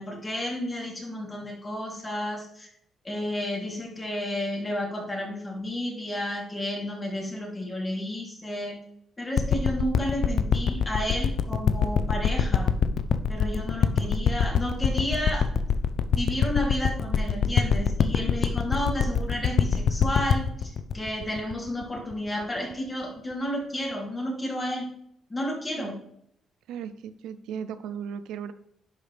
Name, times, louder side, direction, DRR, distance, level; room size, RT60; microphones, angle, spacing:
voice 1, 0.0-2.7 3.0-8.8 9.2-12.7 13.3-15.5 16.1-24.9 25.3-26.0, left 1 dB, 20° left, -1 dB, 2.9 m, -31 dB
sound 1, 9.4-22.1 22.7-22.8, left 7 dB, 65° left, 0.5 m, -24 dB
voice 2, 14.0-14.4 25.8-26.0 26.7-28.5, right 8 dB, 85° right, 12 dB, 0.5 m, -37 dB
11.0 x 4.9 x 3.3 m, 0.72 s
cardioid pair, 90°, 0 cm